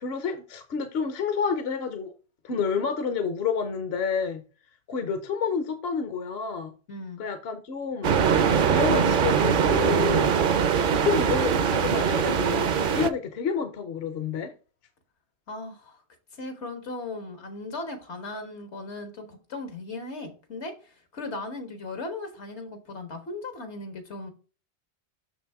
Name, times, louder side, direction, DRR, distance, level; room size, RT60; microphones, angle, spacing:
voice 1, 0.0-2.1 2.4-4.4 4.9-6.7 7.2-8.1 8.6-10.3 10.8-14.5, left 6 dB, 70° left, 1.0 m, -29 dB
voice 2, 6.9-7.2 15.5-16.0 16.3-24.3, left 2 dB, 85° left, 1.7 m, -37 dB
sound 1, 8.0-13.1, right 7 dB, 55° right, 0.7 m, -22 dB
6.4 x 6.0 x 3.5 m
omnidirectional pair, 1.1 m